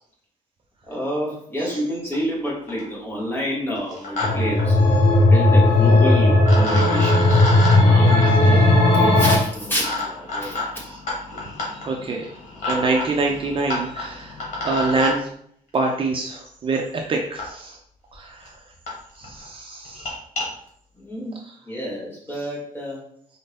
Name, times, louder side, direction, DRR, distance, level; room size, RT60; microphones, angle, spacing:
voice 1, 0.9-4.8 5.2-8.7 8.9-10.6 21.0-21.4 21.6-23.0, equal, 15° left, -5 dB, 1.5 m, -28 dB
sound 1, 2.1-2.2 2.5-2.9 3.8-4.3 4.6-4.7 5.9-6.0 6.4-15.2 16.5-16.6 17.4-17.5 18.1-18.2 18.5-18.6 18.9-19.0 19.2-19.4 19.9-20.5, left 2 dB, 60° left, 1.7 m, -30 dB
sound 2, 4.2-9.4, left 2 dB, 40° left, 0.9 m, -15 dB
voice 2, 11.8-12.3 12.7-15.3 15.7-17.8 18.1-18.5 19.2-20.1, right 3 dB, 40° right, 1 dB, 0.5 m, -25 dB
4.2 x 2.7 x 3.4 m, 0.65 s
cardioid pair, 140°, 14 cm